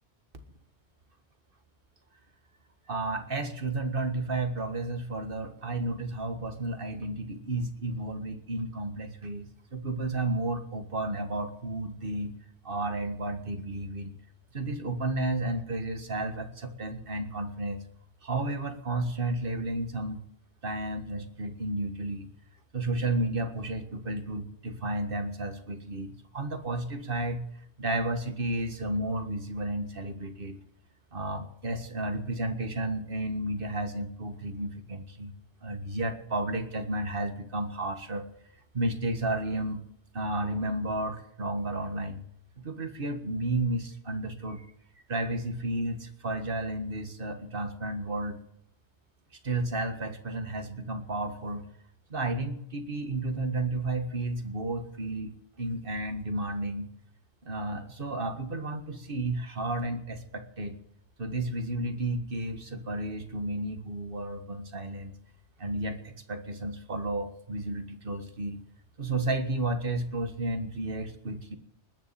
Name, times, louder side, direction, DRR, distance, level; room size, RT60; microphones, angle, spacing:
voice 1, 2.9-12.3 12.6-14.1 14.5-17.8 18.2-20.2 20.6-22.3 22.7-27.4 27.8-30.6 31.1-35.3 35.6-38.3 38.7-39.8 40.1-42.2 42.6-44.6 45.1-48.4 49.4-51.7 52.1-56.9 57.4-60.8 61.2-65.2 65.6-68.6 69.0-71.6, right 2 dB, 55° right, 7 dB, 1.9 m, -32 dB
20.0 x 7.1 x 9.3 m, 0.75 s
omnidirectional pair, 1.1 m